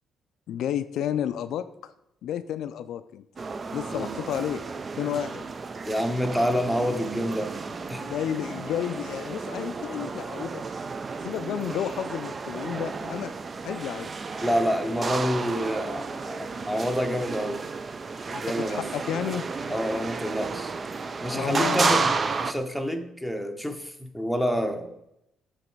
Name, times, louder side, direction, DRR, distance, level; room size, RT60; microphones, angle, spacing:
voice 1, 0.5-1.9 2.2-3.3 3.7-4.6 5.0-5.5 8.0-10.6 11.2-13.3 13.6-14.1 18.3-19.5 21.3-22.1, left 10 dB, 75° left, 12 dB, 0.3 m, -31 dB
sound 1, 3.4-22.5, right 4 dB, 35° right, 0.4 m, -32 dB
voice 2, 5.9-7.5 7.9-8.0 14.4-17.6 18.4-18.9 19.7-20.8 21.2-22.1 22.4-24.9, equal, ahead, 6 dB, 0.8 m, -28 dB
7.7 x 3.2 x 4.5 m, 0.82 s
cardioid pair, 90°, 0 cm